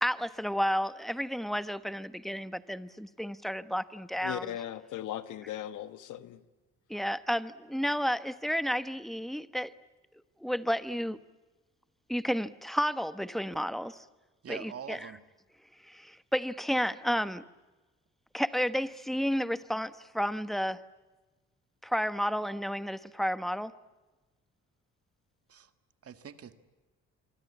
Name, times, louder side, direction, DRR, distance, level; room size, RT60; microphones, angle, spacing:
voice 1, 0.0-4.4 6.9-9.7 10.4-11.2 12.1-14.0 14.5-15.1 15.8-17.4 18.3-20.8 21.8-23.7, equal, ahead, 1.2 m, -31 dB
voice 2, 4.2-6.4, left 12 dB, 85° left, 1.5 m, -38 dB
voice 3, 14.4-15.2 25.5-25.7 26.0-26.7, right 8 dB, 50° right, 1.9 m, -44 dB
25.5 x 24.5 x 8.6 m
cardioid pair, 90°, 30 cm